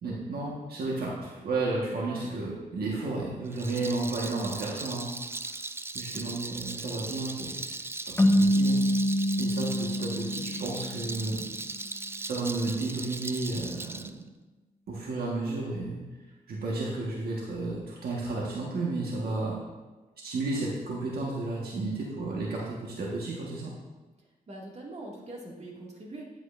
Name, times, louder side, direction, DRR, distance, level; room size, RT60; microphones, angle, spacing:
voice 1, 0.0-5.1 5.9-8.8 9.4-11.4 12.2-14.1 14.9-16.0 16.5-19.6 20.2-23.7, right 2 dB, 80° right, -4 dB, 1.5 m, -32 dB
Rattle, 3.5-14.1, right 3 dB, 15° right, 0.3 m, -38 dB
sound 1, 8.2-11.3, equal, 15° left, 0.7 m, -26 dB
voice 2, 24.5-26.4, right 2 dB, 45° right, -3 dB, 2.3 m, -42 dB
10.5 x 7.9 x 2.6 m, 1.2 s
cardioid pair, 80°, 16 cm